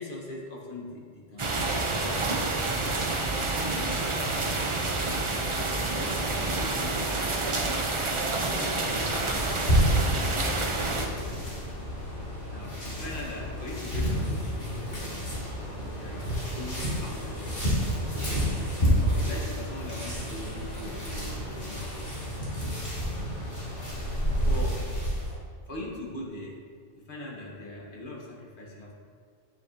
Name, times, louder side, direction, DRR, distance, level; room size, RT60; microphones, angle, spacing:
voice 1, 0.0-2.3 2.8-3.1 3.4-4.8 5.9-7.3 8.0-9.6 10.6-11.5 12.5-14.9 16.0-17.9 18.9-22.2 24.4-24.9 25.7-26.6 26.9-28.9, left 2 dB, 45° left, -2 dB, 1.5 m, -41 dB
sound 1, 1.4-11.1, right 2 dB, 35° right, 0.6 m, -28 dB
sound 2, 8.7-25.3, equal, 85° left, 2.7 m, -30 dB
8.5 x 7.8 x 2.8 m, 2.1 s
omnidirectional pair, 1.2 m